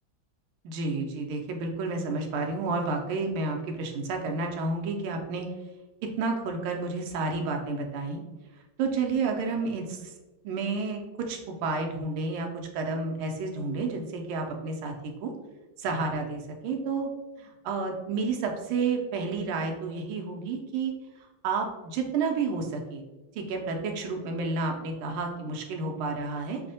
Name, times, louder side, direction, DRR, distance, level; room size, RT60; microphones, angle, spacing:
voice 1, 0.6-5.5 6.2-8.2 8.8-10.1 10.4-15.3 15.8-17.1 17.4-20.9 21.4-23.0 23.3-26.6, right 4 dB, 80° right, 2 dB, 1.4 m, -30 dB
5.0 x 2.0 x 2.7 m, 1.1 s
omnidirectional pair, 2.3 m